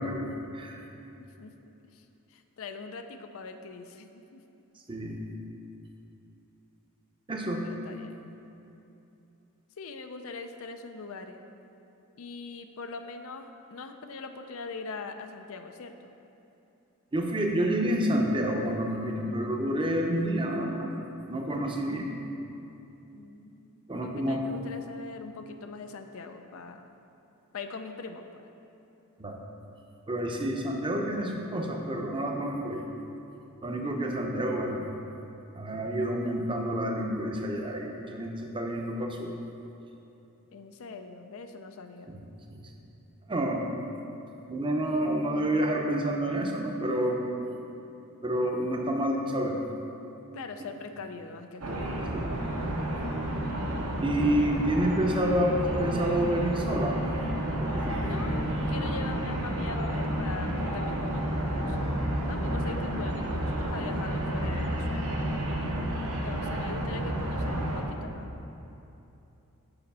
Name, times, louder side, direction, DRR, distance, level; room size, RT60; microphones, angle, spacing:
voice 1, 0.0-0.8 4.9-5.2 7.3-7.6 17.1-21.0 21.3-22.1 23.9-24.4 29.2-29.4 30.1-32.8 33.6-34.9 35.6-39.3 42.1-42.2 42.5-42.6 43.3-43.7 44.5-47.2 48.2-49.5 51.6-51.8 52.1-52.4 54.0-57.0 57.6-58.2, right 1 dB, 20° right, 1 dB, 0.7 m, -29 dB
voice 2, 0.9-2.0 2.3-4.4 7.4-8.3 9.8-11.4 12.2-16.1 23.1-26.9 27.5-28.5 40.5-42.1 50.3-51.9 54.2-54.5 58.0-61.9 62.2-65.2 66.2-68.3, left 4 dB, 65° left, 7 dB, 0.5 m, -42 dB
sound 1, 51.6-67.8, right 1 dB, 85° right, 1.3 m, -30 dB
6.9 x 5.0 x 5.5 m, 2.9 s
head